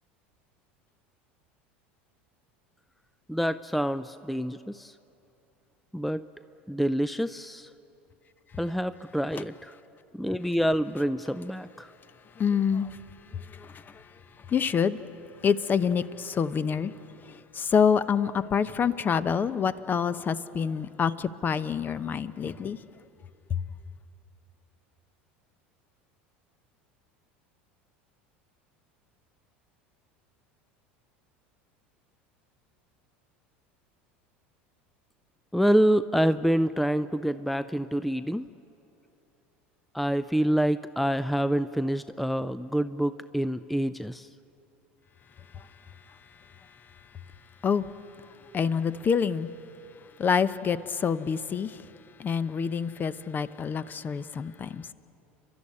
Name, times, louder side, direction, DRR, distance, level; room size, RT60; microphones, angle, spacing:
voice 1, 3.3-5.0 5.9-6.3 6.7-7.7 8.6-9.8 10.1-11.9 35.5-38.5 39.9-44.3, equal, ahead, 0.5 m, -27 dB
voice 2, 12.4-13.0 13.3-14.1 14.5-15.0 15.4-16.9 17.2-22.8 23.5-23.6 45.5-45.7 47.6-47.9 48.3-49.5 50.2-51.9 52.2-54.9, left 6 dB, 30° left, 0.9 m, -27 dB
29.5 x 12.5 x 9.9 m
hypercardioid pair, 85°, 6 cm